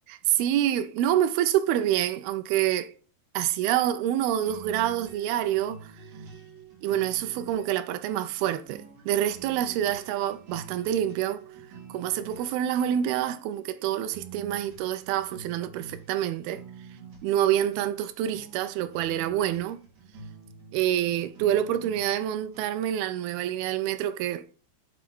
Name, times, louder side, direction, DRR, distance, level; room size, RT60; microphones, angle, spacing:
voice 1, 0.3-2.9 3.3-5.9 6.8-11.4 11.9-16.6 17.2-19.8 20.7-24.4, right 11 dB, 80° right, 2.4 m, -27 dB
sound 1, 4.4-23.0, right 6 dB, 50° right, 3.2 m, -47 dB
8.1 x 3.6 x 6.1 m
omnidirectional pair, 4.6 m